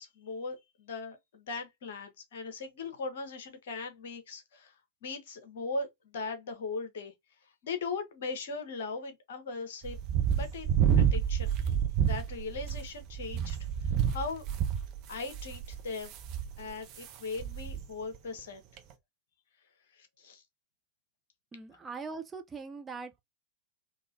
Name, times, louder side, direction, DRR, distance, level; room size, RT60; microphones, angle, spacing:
voice 1, 0.0-4.7 5.0-7.1 7.6-10.0 10.3-11.5 12.0-13.6 13.8-14.4 15.1-16.1 16.6-18.6 20.0-20.4, left 4 dB, 55° left, 1.2 m, -39 dB
sound 1, 9.8-17.1 17.4-17.9 18.1-18.2 18.8-18.9, right 8 dB, 40° right, 0.9 m, -29 dB
voice 2, 21.5-23.2, right 4 dB, 15° right, 0.6 m, -41 dB
3.7 x 2.9 x 2.7 m
figure-of-eight pair, 90°, 0 cm